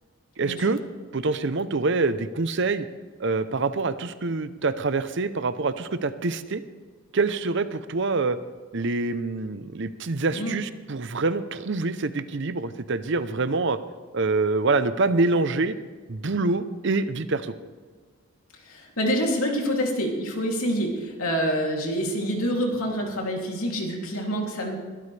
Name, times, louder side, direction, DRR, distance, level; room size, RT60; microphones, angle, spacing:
voice 1, 0.4-0.8 1.1-2.9 3.2-6.6 7.1-8.4 8.7-13.8 14.1-15.7 16.1-17.5, right 3 dB, 55° right, 12 dB, 0.7 m, -25 dB
voice 2, 18.6-24.8, equal, 80° left, 0 dB, 2.9 m, -27 dB
22.5 x 12.5 x 3.4 m, 1.5 s
head